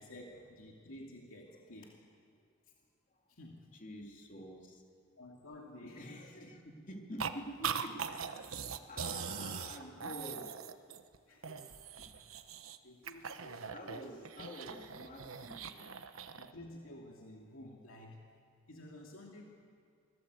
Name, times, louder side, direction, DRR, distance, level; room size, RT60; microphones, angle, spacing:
voice 1, 0.0-2.0 3.3-3.7 5.2-6.5 11.3-12.3 12.8-13.7 16.3-18.3 18.7-19.4, left 1 dB, 80° left, -1 dB, 2.5 m, -52 dB
voice 2, 3.7-4.8 5.9-10.9 13.7-16.0, equal, 40° left, 1 dB, 3.3 m, -48 dB
sound 1, 7.2-7.3 7.6-11.2 11.4-12.8 13.1-16.5, right 7 dB, 80° right, 1.1 m, -41 dB
25.0 x 18.5 x 8.2 m, 2.2 s
head